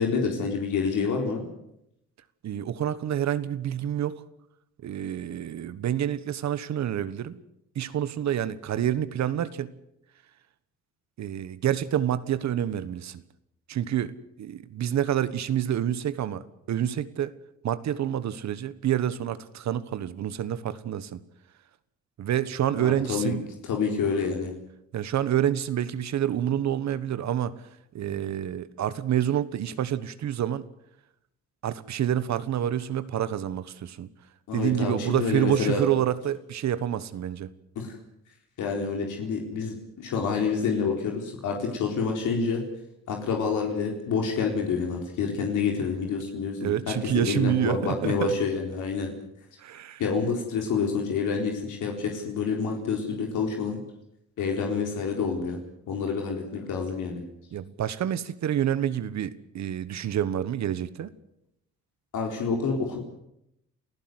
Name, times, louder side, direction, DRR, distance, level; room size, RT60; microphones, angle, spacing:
voice 1, 0.0-1.4 22.8-23.3 23.7-24.5 34.5-35.8 37.8-37.9 38.6-42.6 43.1-49.1 50.0-53.8 54.4-55.6 55.9-57.2 62.1-63.0, left 5 dB, 80° left, 1 dB, 4.2 m, -28 dB
voice 2, 2.4-4.2 4.8-7.4 7.7-9.7 11.2-13.2 13.7-14.1 14.4-17.3 17.6-21.2 22.2-23.4 24.9-27.6 27.9-30.7 31.6-34.1 34.5-37.5 46.6-48.3 49.6-50.0 57.5-61.1, right 10 dB, 65° right, 15 dB, 1.4 m, -28 dB
28.5 x 15.0 x 8.0 m, 0.81 s
cardioid pair, 90°, 30 cm